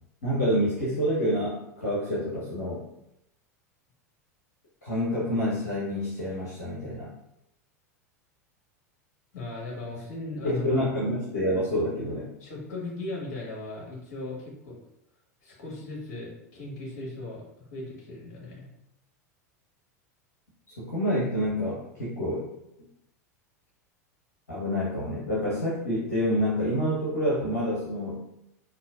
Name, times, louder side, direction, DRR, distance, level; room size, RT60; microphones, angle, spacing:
voice 1, 0.2-2.8 4.8-7.1 10.4-12.3 20.8-22.5 24.5-28.2, equal, 75° left, -8 dB, 0.9 m, -27 dB
voice 2, 9.3-10.9 12.4-14.8 15.4-18.7, left 2 dB, 55° left, -4 dB, 1.4 m, -37 dB
3.8 x 2.4 x 2.4 m, 0.82 s
figure-of-eight pair, 85°, 9 cm